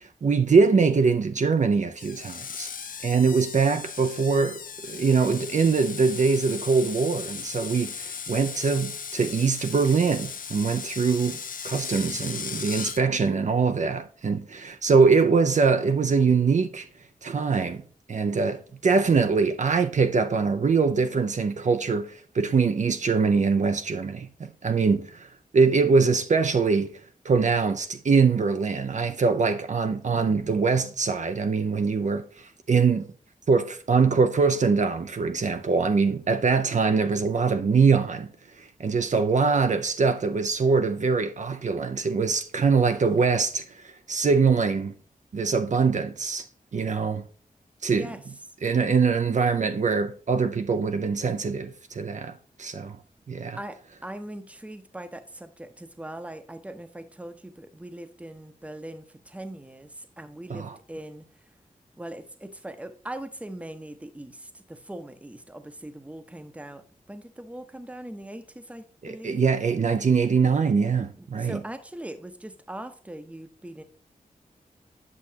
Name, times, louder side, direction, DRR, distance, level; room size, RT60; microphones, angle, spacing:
voice 1, 0.0-2.7 3.0-11.4 11.6-16.9 17.2-17.8 18.1-26.9 27.2-33.1 33.5-38.3 38.6-44.9 45.3-46.4 46.7-47.2 47.8-48.1 48.6-52.3 52.6-53.0 53.3-53.6 60.5-60.8 69.0-71.6, right 5 dB, 55° right, 0.6 m, -23 dB
Screech, 2.0-13.0, left 6 dB, 70° left, 0.6 m, -37 dB
voice 2, 47.9-48.2 53.6-61.5 62.0-69.5 71.2-73.8, right 1 dB, 10° right, 0.8 m, -41 dB
8.5 x 6.2 x 2.8 m
wide cardioid pair, 70°, 14 cm